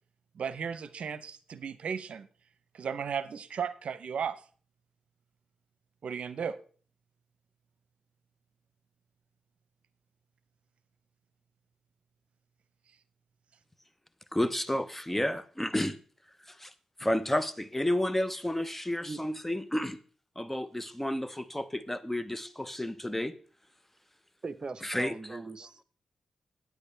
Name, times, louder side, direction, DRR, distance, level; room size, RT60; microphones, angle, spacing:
voice 1, 0.4-2.3 2.7-4.4 6.0-6.6, right 7 dB, 75° right, 0.7 m, -35 dB
voice 2, 14.3-16.0 16.5-16.7 17.0-20.0 20.4-23.3 24.8-25.4, left 1 dB, 10° left, 0.8 m, -31 dB
voice 3, 24.4-25.8, right 4 dB, 40° right, 0.9 m, -40 dB
13.0 x 9.5 x 3.4 m
cardioid pair, 65°, 2 cm